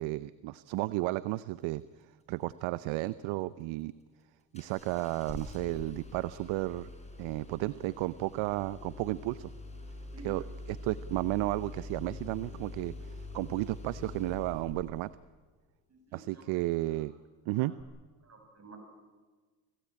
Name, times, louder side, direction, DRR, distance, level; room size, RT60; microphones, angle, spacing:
voice 1, 0.0-1.8 2.3-3.9 4.5-6.9 7.2-9.5 10.2-10.4 10.7-15.1 16.1-17.1 17.5-17.7, right 18 dB, 75° right, 17 dB, 0.8 m, -33 dB
Engine starting, 4.5-15.2 17.8-17.9, left 2 dB, 15° left, 6.0 m, -45 dB
voice 2, 15.9-16.4 16.9-17.0 17.6-17.7 18.2-18.8, right 3 dB, 30° right, 5 dB, 6.6 m, -53 dB
25.5 x 17.0 x 8.7 m, 1.4 s
supercardioid pair, 80°, 48 cm